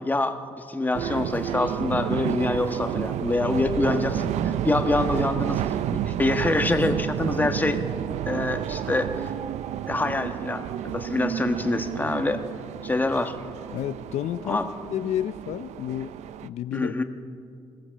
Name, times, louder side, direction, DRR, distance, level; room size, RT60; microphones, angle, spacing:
voice 1, 0.0-7.8 8.3-9.3 9.9-12.4 12.8-13.3 14.5-14.6 16.7-17.0, left 2 dB, 15° left, 6 dB, 1.3 m, -26 dB
sound 1, 0.9-16.5, right 11 dB, 90° right, 0.5 m, -30 dB
voice 2, 13.7-14.6 14.9-16.1 16.4-16.9, left 11 dB, 90° left, 13 dB, 0.5 m, -30 dB
22.0 x 15.5 x 7.6 m, 2.4 s
cardioid pair, 110°, 11 cm